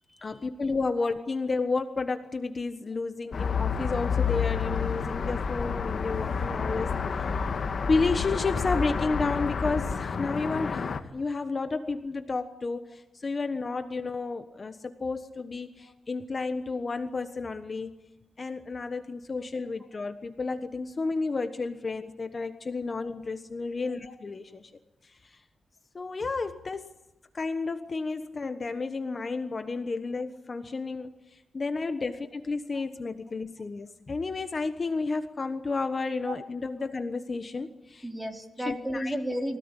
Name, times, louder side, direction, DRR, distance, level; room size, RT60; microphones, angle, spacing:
voice 1, 0.2-6.9 7.2-7.3 7.9-17.9 18.4-24.7 25.0-25.4 25.9-27.0 27.3-38.1 38.7-39.1, left 3 dB, 35° left, 1.2 m, -31 dB
sound 1, 3.3-11.0, left 6 dB, 55° left, 1.6 m, -29 dB
voice 2, 38.0-39.6, equal, 10° right, 3.5 m, -33 dB
24.0 x 17.0 x 9.9 m
wide cardioid pair, 120°, 0 cm